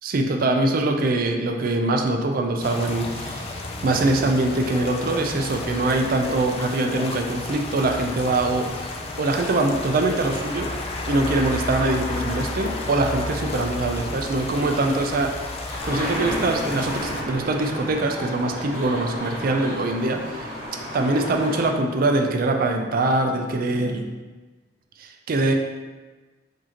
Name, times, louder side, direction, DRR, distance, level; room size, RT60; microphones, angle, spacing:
voice 1, 0.0-3.5 3.8-8.9 9.2-10.7 11.1-15.3 15.6-20.6 20.9-24.1 25.0-25.5, right 2 dB, 50° right, 4 dB, 0.4 m, -23 dB
sound 1, 2.6-17.2, left 2 dB, 35° left, 0.4 m, -32 dB
Laughter, 15.4-16.7 17.1-20.3, equal, 15° left, 0.8 m, -39 dB
sound 2, 15.8-21.7, equal, 15° right, 1.5 m, -32 dB
4.8 x 2.7 x 2.9 m, 1.3 s
head